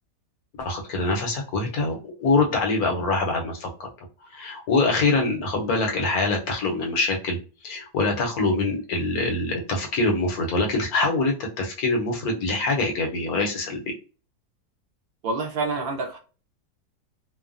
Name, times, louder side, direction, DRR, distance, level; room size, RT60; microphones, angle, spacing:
voice 1, 0.6-3.7 4.3-7.4 7.6-13.9, left 3 dB, 65° left, 1 dB, 1.1 m, -24 dB
voice 2, 15.2-16.2, right 3 dB, 70° right, 0 dB, 0.5 m, -27 dB
3.1 x 2.1 x 2.5 m, 0.34 s
omnidirectional pair, 1.9 m